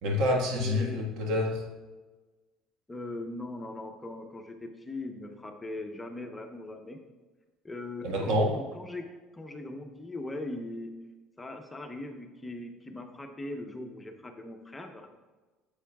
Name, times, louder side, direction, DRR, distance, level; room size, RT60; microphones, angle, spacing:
voice 1, 0.0-1.7 8.0-8.6, left 1 dB, 70° right, 1 dB, 1.6 m, -27 dB
voice 2, 0.5-1.0 2.9-7.0 7.6-9.1 9.3-10.9 11.4-15.1, left 2 dB, 15° left, 4 dB, 0.9 m, -40 dB
9.8 x 7.1 x 2.4 m, 1.3 s
supercardioid pair, 85°, 0 cm